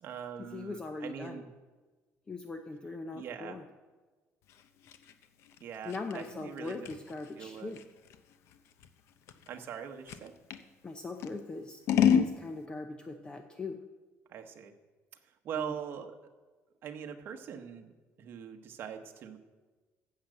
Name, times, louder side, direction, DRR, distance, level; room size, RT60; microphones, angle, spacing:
voice 1, 0.0-1.5 3.1-3.6 5.6-6.9 7.4-7.7 9.5-10.3 14.3-14.7 15.2-16.2 16.8-17.9 18.2-19.4, right 8 dB, 45° right, 5 dB, 1.1 m, -42 dB
voice 2, 0.5-1.4 2.3-3.6 5.8-7.8 10.8-13.8 15.6-15.7, left 3 dB, 20° left, 6 dB, 0.6 m, -40 dB
Scissors, 4.5-10.7 11.2-12.3, left 8 dB, 65° left, 0.8 m, -31 dB
11.5 x 7.5 x 7.7 m, 1.3 s
cardioid pair, 165°, 5 cm